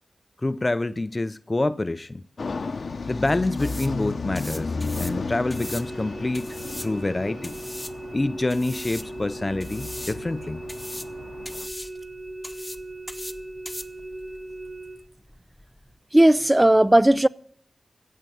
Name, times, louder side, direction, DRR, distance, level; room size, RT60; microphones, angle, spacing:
voice 1, 0.4-2.2 3.1-7.6 8.1-10.6, left 2 dB, 30° left, 0.6 m, -27 dB
sound 1, 2.4-11.7, left 4 dB, 65° left, 0.9 m, -34 dB
sound 2, 2.6-15.9, left 1 dB, 15° left, 1.2 m, -41 dB
sound 3, 5.5-15.0, right 2 dB, 40° right, 4.7 m, -38 dB
voice 2, 16.1-17.3, right 1 dB, 15° right, 0.5 m, -16 dB
16.0 x 7.6 x 9.2 m
cardioid pair, 65°, 0 cm